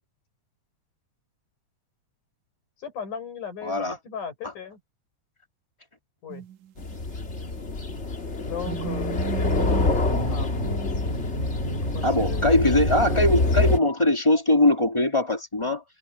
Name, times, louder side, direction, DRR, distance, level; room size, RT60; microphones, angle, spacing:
voice 1, 2.8-4.8 6.2-6.5 8.4-11.1 11.9-12.6, left 6 dB, 80° left, 7.3 m, -37 dB
voice 2, 3.6-4.0 12.0-15.8, left 1 dB, 10° left, 2.4 m, -21 dB
sound 1, 6.3-7.1 8.7-13.8, right 8 dB, 75° right, 2.4 m, -36 dB
sound 2, 6.8-13.8, left 2 dB, 25° left, 1.7 m, -26 dB
omnidirectional pair, 3.5 m